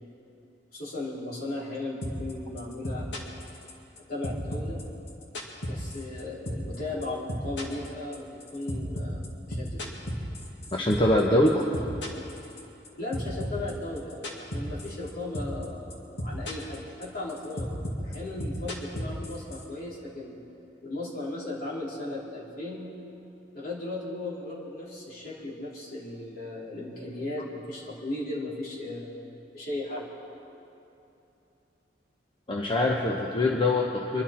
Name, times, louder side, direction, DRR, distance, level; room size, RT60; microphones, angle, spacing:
voice 1, 0.7-3.2 4.1-4.8 5.7-9.9 11.3-11.8 13.0-17.7 18.0-20.4 20.8-23.0 23.5-30.1, left 2 dB, 55° left, -6 dB, 3.6 m, -36 dB
sound 1, 2.0-2.3 2.6-4.0 4.2-6.2 6.5-6.8 7.0-11.2 11.5-12.9 13.1-15.1 15.3-15.6 15.9-16.8 17.0-19.6, equal, 80° left, 2.1 m, -34 dB
voice 2, 10.7-11.6 32.5-34.2, left 1 dB, 30° left, -1 dB, 0.9 m, -23 dB
25.0 x 11.5 x 4.4 m, 2.8 s
head